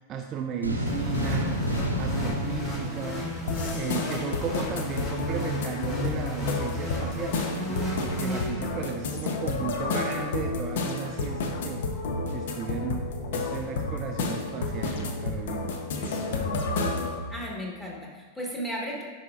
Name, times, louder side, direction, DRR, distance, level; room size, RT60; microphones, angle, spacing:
voice 1, 0.0-1.6 2.0-3.3 3.7-11.8 12.3-15.7 16.0-16.7, right 6 dB, 35° right, 4 dB, 0.3 m, -35 dB
sound 1, 0.6-4.1, equal, 85° right, 0.7 m, -30 dB
sound 2, 0.9-9.0, left 1 dB, 30° left, 1.9 m, -34 dB
sound 3, 3.5-17.2, left 3 dB, 55° left, 0.6 m, -31 dB
voice 2, 17.3-19.0, equal, 10° left, -3 dB, 1.4 m, -35 dB
10.0 x 4.3 x 2.4 m, 1.5 s
figure-of-eight pair, 90°, 0 cm